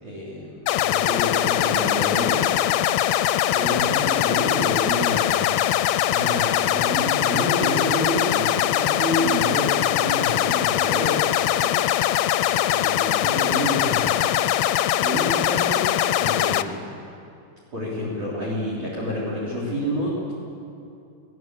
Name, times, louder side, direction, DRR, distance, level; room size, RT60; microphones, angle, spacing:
voice 1, 0.0-2.4 3.5-5.5 5.8-11.7 12.4-14.1 15.0-15.9 16.2-16.9 17.7-20.3, equal, 50° right, -4 dB, 4.8 m, -29 dB
sound 1, 0.7-16.6, left 12 dB, 80° left, 2.5 m, -22 dB
21.0 x 17.5 x 7.8 m, 2.6 s
omnidirectional pair, 4.5 m